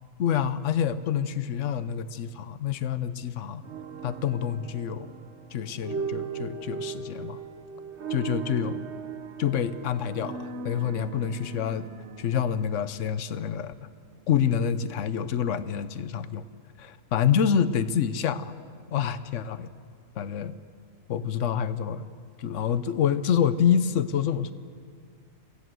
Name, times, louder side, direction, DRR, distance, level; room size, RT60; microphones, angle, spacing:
voice 1, 0.2-3.6 4.0-5.1 5.5-7.4 8.1-8.9 9.4-11.9 12.2-13.7 14.3-16.5 16.8-18.5 18.9-19.7 20.2-20.6 21.1-22.0 22.4-24.5, left 8 dB, 70° left, 13 dB, 1.1 m, -27 dB
sound 1, 3.6-13.7, right 6 dB, 60° right, 1.1 m, -38 dB
26.5 x 16.0 x 7.7 m, 2.1 s
omnidirectional pair, 1.4 m